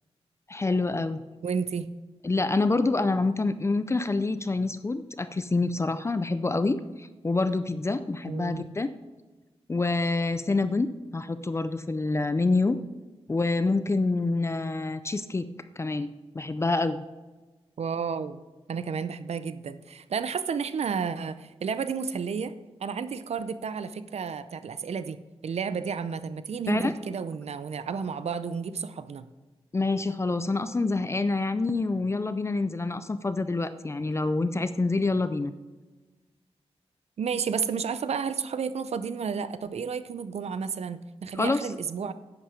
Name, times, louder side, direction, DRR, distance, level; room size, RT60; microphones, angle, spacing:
voice 1, 0.5-1.2 2.2-8.9 9.7-12.8 13.3-15.5 15.8-17.0 26.7-26.9 29.7-35.5 41.4-41.7, left 3 dB, 25° left, 12 dB, 0.5 m, -27 dB
voice 2, 1.4-1.9 8.3-8.8 17.8-18.4 18.7-29.3 37.2-42.1, right 6 dB, 80° right, 13 dB, 0.6 m, -32 dB
11.0 x 8.7 x 5.0 m, 1.2 s
wide cardioid pair, 140°, 11 cm